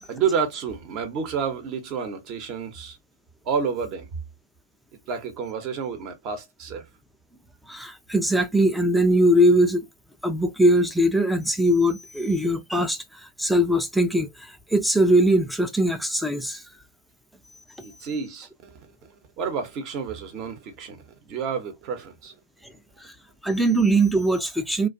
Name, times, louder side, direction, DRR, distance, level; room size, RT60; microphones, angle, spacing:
voice 1, 0.0-3.0 3.4-4.1 5.1-6.9 17.8-18.9 19.4-22.4, right 6 dB, 35° right, 0.8 m, -30 dB
voice 2, 7.7-9.8 10.2-16.6 23.0-23.1 23.4-24.9, right 1 dB, ahead, 0.4 m, -21 dB
2.5 x 2.3 x 2.5 m
figure-of-eight pair, 110°, 0 cm